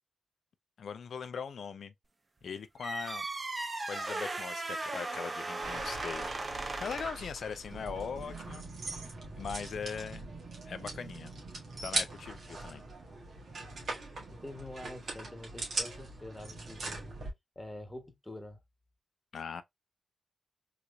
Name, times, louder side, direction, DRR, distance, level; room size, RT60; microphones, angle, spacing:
voice 1, 0.8-1.9 2.4-3.3 3.9-8.7 9.4-10.3 10.7-11.3 11.8-12.8 19.3-19.6, left 6 dB, 70° left, 0.4 m, -40 dB
sound 1, 2.8-7.3, right 2 dB, 40° right, 0.6 m, -37 dB
sound 2, 5.6-17.3, right 2 dB, 65° right, 1.6 m, -40 dB
voice 2, 14.3-17.0 17.5-18.6, left 1 dB, 15° left, 1.3 m, -46 dB
3.8 x 3.0 x 2.2 m
supercardioid pair, 45°, 0 cm